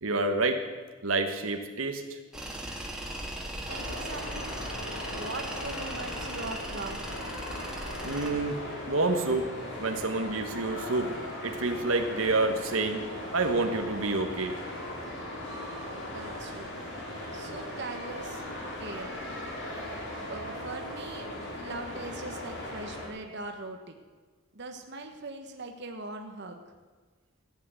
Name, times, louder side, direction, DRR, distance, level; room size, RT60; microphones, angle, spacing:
voice 1, 0.0-0.6 1.0-2.0 8.0-8.6 8.9-9.5 9.8-11.1 11.4-13.0 13.3-14.5, right 3 dB, 80° right, 6 dB, 1.3 m, -28 dB
Tools, 2.3-8.3, right 1 dB, 5° right, 1.9 m, -38 dB
sound 1, 3.7-23.1, left 1 dB, 60° left, 3.7 m, -38 dB
voice 2, 3.7-4.5 5.1-7.1 16.1-16.7 17.3-18.4 18.8-19.1 20.3-23.9 24.5-26.6, right 2 dB, 55° right, 4 dB, 1.2 m, -41 dB
15.0 x 8.7 x 8.1 m, 1.4 s
head